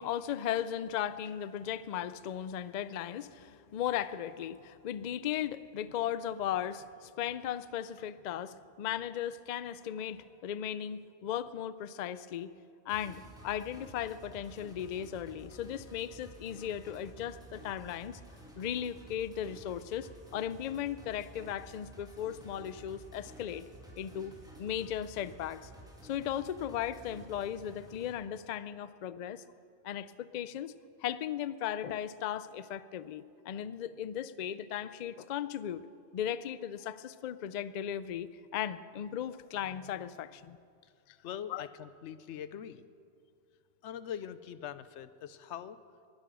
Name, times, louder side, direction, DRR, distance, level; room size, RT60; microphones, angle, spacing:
voice 1, 0.0-12.5 12.9-18.2 18.6-23.7 24.0-24.3 24.6-25.7 26.0-29.4 29.8-30.7 31.0-35.9 36.1-40.6 41.5-41.6, left 10 dB, 55° left, 15 dB, 0.5 m, -37 dB
sound 1, 12.9-28.1, right 1 dB, 5° right, 2.2 m, -52 dB
voice 2, 41.2-42.8 43.8-45.8, left 9 dB, 85° left, 14 dB, 0.9 m, -42 dB
20.5 x 10.5 x 6.2 m, 2.4 s
omnidirectional pair, 1.2 m